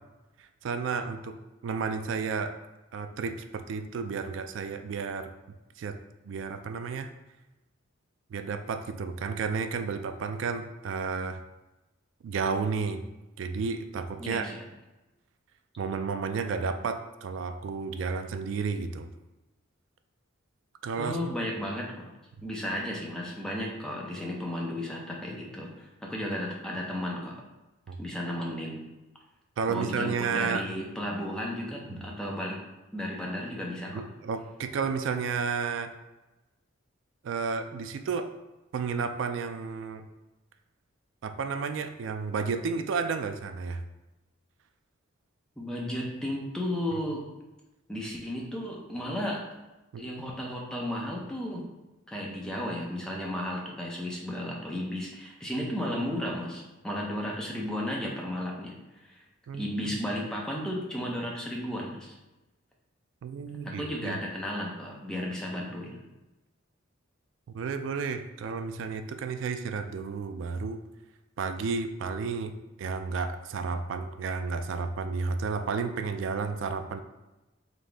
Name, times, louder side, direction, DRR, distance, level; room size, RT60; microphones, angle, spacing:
voice 1, 0.6-1.4 1.6-2.6 2.9-5.3 5.8-6.0 6.2-7.1 8.3-11.4 12.2-13.0 13.4-14.5 15.8-19.1 20.8-21.2 27.9-28.0 29.6-30.6 33.9-35.9 37.2-38.3 38.7-40.1 41.2-43.8 49.9-50.0 59.5-60.0 63.2-64.2 67.5-70.8 71.4-77.0, right 5 dB, 65° right, 8 dB, 0.3 m, -32 dB
voice 2, 14.2-14.6 21.0-22.1 22.4-27.4 28.0-28.8 29.7-32.6 32.9-34.0 45.6-47.2 47.9-49.4 50.0-51.6 52.1-58.8 59.0-59.2 59.5-62.1 63.6-66.0, left 1 dB, 5° left, -3 dB, 0.5 m, -34 dB
4.0 x 2.7 x 3.4 m, 1.0 s
head